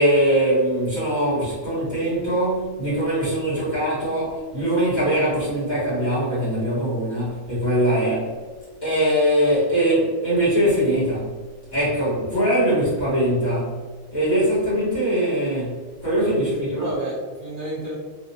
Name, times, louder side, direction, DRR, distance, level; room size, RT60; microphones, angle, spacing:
voice 1, 0.0-8.3 8.8-11.3 11.7-13.8 14.1-16.9, right 1 dB, 35° left, -11 dB, 1.6 m, -22 dB
voice 2, 16.8-18.0, right 1 dB, 45° right, -9 dB, 0.9 m, -31 dB
3.3 x 2.6 x 2.8 m, 1.4 s
omnidirectional pair, 1.4 m